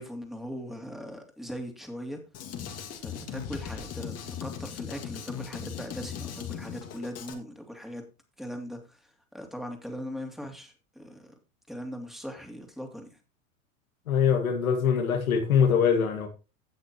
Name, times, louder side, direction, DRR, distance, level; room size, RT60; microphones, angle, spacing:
voice 1, 0.0-2.2 3.0-8.0 8.4-11.3 11.7-13.2, equal, ahead, 2.6 m, -40 dB
Drum kit, 2.3-7.3, left 8 dB, 35° left, 2.1 m, -38 dB
voice 2, 14.1-16.3, left 7 dB, 80° left, 1.9 m, -23 dB
16.5 x 6.5 x 2.9 m
hypercardioid pair, 90°, 42 cm